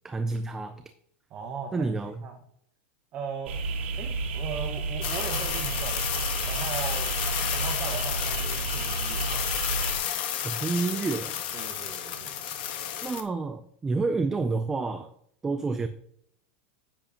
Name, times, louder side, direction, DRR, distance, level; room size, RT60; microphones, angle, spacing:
voice 1, 0.0-0.8 1.7-2.2 10.4-11.4 13.0-15.1 15.4-15.9, right 3 dB, 10° right, 8 dB, 0.3 m, -29 dB
voice 2, 1.3-1.9 2.2-2.4 3.1-3.6 4.0-6.1 6.4-7.1 7.5-9.5 11.5-12.4, right 6 dB, 25° right, 2 dB, 0.9 m, -38 dB
sound 1, 3.5-10.0, right 4 dB, 75° right, 2.1 m, -32 dB
sound 2, 5.0-13.2, left 10 dB, 50° left, 1.4 m, -31 dB
10.0 x 9.0 x 2.8 m, 0.67 s
supercardioid pair, 175°, 6 cm